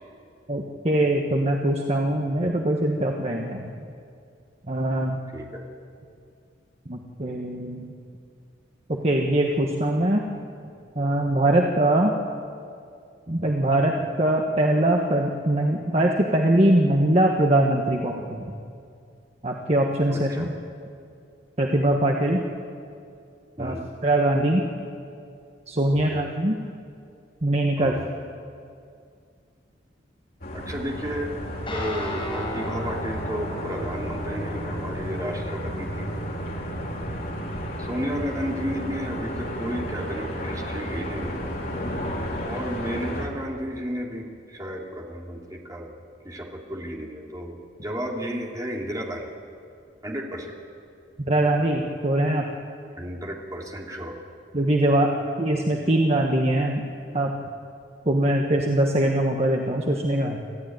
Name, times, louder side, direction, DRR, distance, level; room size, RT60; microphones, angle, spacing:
voice 1, 0.5-3.7 4.7-5.2 6.9-7.9 8.9-10.3 10.9-12.1 13.3-18.5 19.4-20.5 21.6-22.4 23.6-23.7 24.0-24.7 25.7-26.6 27.4-28.0 51.3-52.5 54.5-56.8 57.1-57.3 58.0-60.4, right 1 dB, 35° right, 1 dB, 1.4 m, -22 dB
voice 2, 5.3-5.6 20.1-20.5 23.6-23.8 25.9-26.2 27.8-28.1 30.5-31.3 31.7-36.1 37.8-41.4 42.4-45.9 46.2-47.6 47.8-49.3 50.0-50.5 53.0-54.2, equal, 20° right, -1 dB, 2.9 m, -33 dB
sound 1, 30.4-43.3, equal, 50° left, 3.7 m, -33 dB
Guitar, 31.7-40.5, right 1 dB, 30° left, 5.4 m, -36 dB
27.0 x 14.5 x 9.4 m, 2.4 s
head